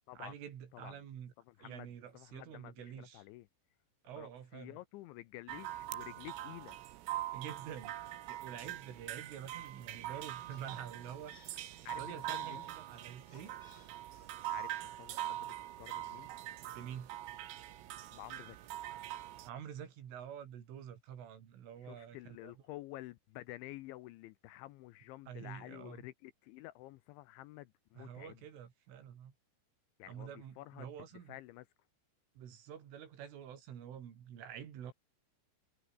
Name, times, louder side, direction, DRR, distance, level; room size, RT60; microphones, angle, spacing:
voice 1, 0.2-1.3 1.6-3.2 4.0-4.8 7.3-7.9 8.3-11.3 12.0-13.5 16.6-17.1 19.4-22.2 22.4-22.5 25.3-26.0 28.0-29.3 30.1-31.4 32.4-34.9, right 9 dB, 75° right, 5.8 m, -48 dB
voice 2, 1.5-3.5 4.2-6.8 11.8-12.7 14.5-16.3 18.1-18.7 21.8-28.4 30.0-30.9 31.3-31.7, left 17 dB, 85° left, 2.9 m, -50 dB
sound 1, 5.5-19.5, right 13 dB, 90° right, 4.5 m, -43 dB
sound 2, 10.5-15.6, left 2 dB, 25° left, 1.0 m, -64 dB
omnidirectional pair, 5.8 m